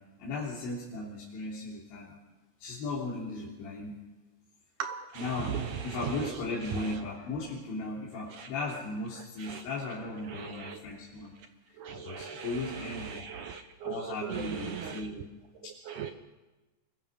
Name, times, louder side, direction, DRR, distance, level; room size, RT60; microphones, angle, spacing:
voice 1, 0.0-2.2 2.6-4.0 5.2-11.3 11.7-13.2 13.8-15.3 15.6-15.8, left 3 dB, 80° left, -5 dB, 5.7 m, -37 dB
voice 2, 4.8-6.3 8.4-8.5 9.4-9.6 10.3-10.8 11.8-15.0 15.9-16.1, right 8 dB, 80° right, 6 dB, 1.7 m, -38 dB
28.0 x 23.0 x 5.4 m, 1.1 s
omnidirectional pair, 5.2 m